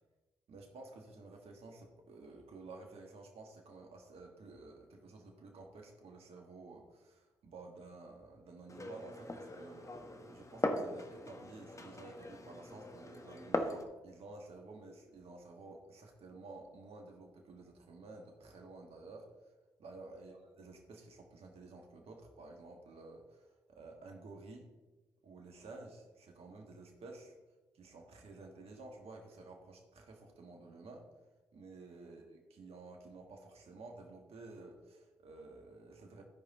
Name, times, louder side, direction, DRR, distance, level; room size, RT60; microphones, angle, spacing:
voice 1, 0.5-19.3 19.8-24.7 25.2-27.3 27.7-31.1 31.5-36.2, right 3 dB, 65° right, 2 dB, 1.5 m, -52 dB
Glass, 8.7-13.8, left 2 dB, 30° left, 1.2 m, -40 dB
13.5 x 5.2 x 4.1 m, 1.1 s
hypercardioid pair, 45°, 11 cm